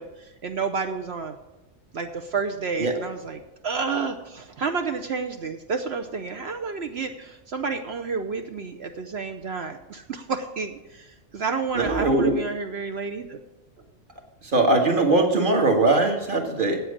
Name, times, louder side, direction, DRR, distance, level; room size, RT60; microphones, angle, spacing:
voice 1, 0.0-1.4 1.9-13.4, right 5 dB, 60° right, 6 dB, 1.0 m, -30 dB
voice 2, 11.7-12.3 14.5-16.8, right 2 dB, 40° right, 3 dB, 1.7 m, -20 dB
8.5 x 7.9 x 8.5 m, 1.0 s
omnidirectional pair, 1.4 m